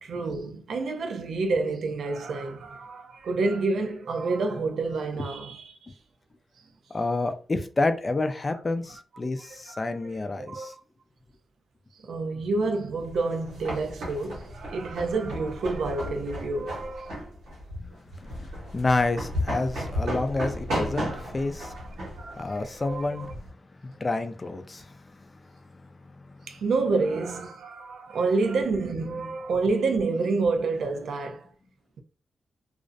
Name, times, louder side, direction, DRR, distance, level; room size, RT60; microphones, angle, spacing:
voice 1, 0.0-5.8 9.4-9.8 10.1-10.7 12.0-17.2 21.1-21.3 21.6-23.3 26.5-31.5, right 3 dB, 75° right, 0.4 m, -29 dB
voice 2, 6.9-10.7 17.8-21.8 22.4-23.5 23.8-25.3 25.7-26.5, left 2 dB, 35° left, 0.4 m, -29 dB
sound 1, 13.1-23.5, equal, 90° right, 1.1 m, -34 dB
2.4 x 2.0 x 2.5 m
supercardioid pair, 50°, 0 cm